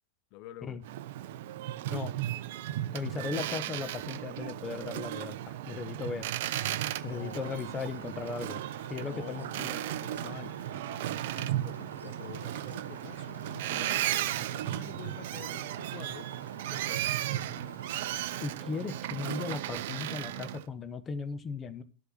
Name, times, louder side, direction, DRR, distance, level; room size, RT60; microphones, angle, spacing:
voice 1, 0.3-0.8 7.0-7.4 9.0-10.5 10.8-17.8, left 14 dB, 45° left, 0.5 m, -48 dB
Boat Water vehicle, 0.8-20.6, right 13 dB, 55° right, 0.5 m, -35 dB
voice 2, 2.9-6.3 7.0-8.6 8.9-9.8 18.4-21.8, left 5 dB, 20° left, 0.9 m, -37 dB
sound 1, 6.6-18.4, right 3 dB, 75° right, 1.2 m, -49 dB
13.5 x 8.0 x 2.9 m
figure-of-eight pair, 90°, 0 cm